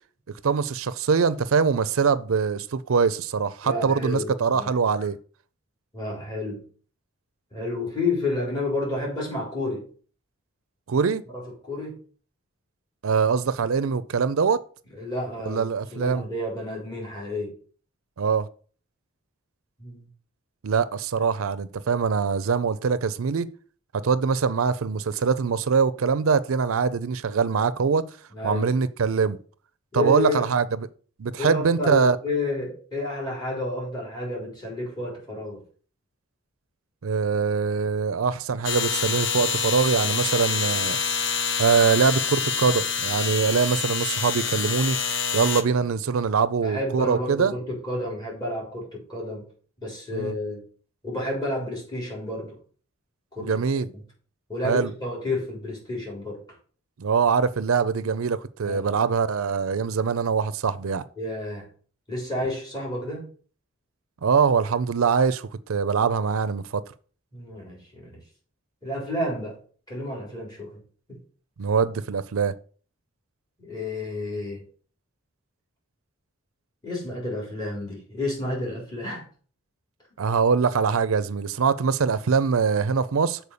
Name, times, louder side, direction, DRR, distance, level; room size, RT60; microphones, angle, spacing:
voice 1, 0.4-5.2 10.9-11.2 13.0-14.6 15.5-16.2 18.2-18.5 20.6-23.5 23.9-28.0 28.4-29.4 29.9-30.7 31.2-32.2 37.0-41.0 41.6-45.0 45.3-47.5 50.1-50.3 53.4-53.9 54.6-54.9 57.0-61.0 64.2-66.8 71.6-72.5 80.2-83.4, right 5 dB, 85° right, 0.5 m, -23 dB
voice 2, 3.6-4.7 5.0-5.1 5.9-6.6 7.5-9.9 11.3-12.0 14.9-17.5 19.8-20.1 28.3-28.7 29.9-30.4 31.4-35.6 46.6-49.4 49.8-50.6 51.0-52.6 53.3-53.6 54.5-56.4 58.6-58.9 61.2-61.7 62.1-63.3 67.3-68.2 68.8-69.6 69.9-70.8 71.1-71.2 73.6-74.6 76.8-79.2, left 2 dB, 20° left, 3.8 m, -30 dB
sound 1, 38.6-45.6, left 6 dB, 60° left, 0.9 m, -26 dB
6.9 x 4.5 x 6.6 m
head